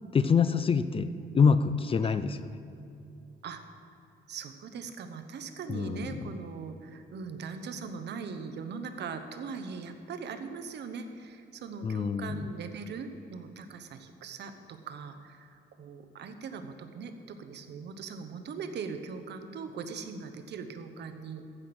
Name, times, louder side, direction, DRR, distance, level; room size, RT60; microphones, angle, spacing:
voice 1, 0.1-2.5 5.7-6.3 11.8-12.5, left 5 dB, 30° left, 13 dB, 0.4 m, -26 dB
voice 2, 4.3-21.4, right 5 dB, 65° right, 7 dB, 1.0 m, -40 dB
14.0 x 6.1 x 7.9 m, 2.7 s
cardioid pair, 130°, 19 cm